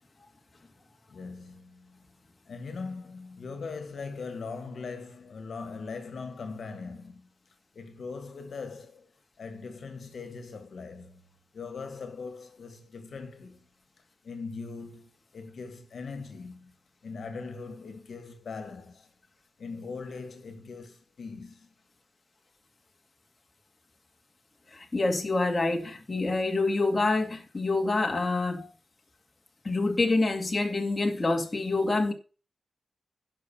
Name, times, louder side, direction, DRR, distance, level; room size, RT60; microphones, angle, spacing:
voice 1, 1.1-2.1 2.5-7.3 7.7-9.1 9.4-11.2 11.5-13.7 14.2-16.7 17.0-19.1 19.6-21.7, left 4 dB, 65° left, 1.9 m, -40 dB
voice 2, 24.7-28.7 29.6-32.1, left 2 dB, 25° left, 2.1 m, -26 dB
11.5 x 5.5 x 7.2 m
wide cardioid pair, 130°, 0 cm